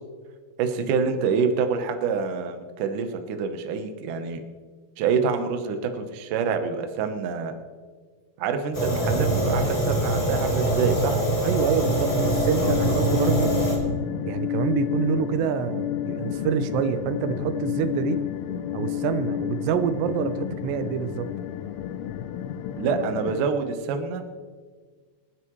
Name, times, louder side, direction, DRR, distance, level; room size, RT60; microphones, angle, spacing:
voice 1, 0.6-4.4 5.0-7.5 8.4-11.2 22.8-24.3, right 5 dB, 70° right, 6 dB, 2.2 m, -26 dB
Fire, 8.7-13.8, right 1 dB, 15° left, 3.7 m, -24 dB
voice 2, 11.4-13.5 14.3-18.2 18.7-21.3, right 7 dB, 90° right, 11 dB, 2.9 m, -26 dB
sound 1, 11.8-23.4, left 10 dB, 85° left, 2.9 m, -30 dB
27.5 x 9.7 x 3.2 m, 1.5 s
omnidirectional pair, 4.8 m